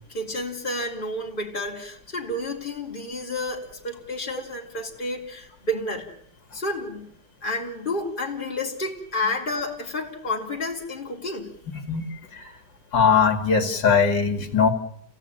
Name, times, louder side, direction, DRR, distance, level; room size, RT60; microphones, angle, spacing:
voice 1, 0.1-6.1 6.5-7.1 7.4-11.6, left 1 dB, 25° left, 0 dB, 3.5 m, -30 dB
voice 2, 11.9-12.5 12.9-14.7, left 6 dB, 70° left, 7 dB, 3.0 m, -20 dB
28.5 x 17.0 x 9.0 m, 0.69 s
omnidirectional pair, 2.0 m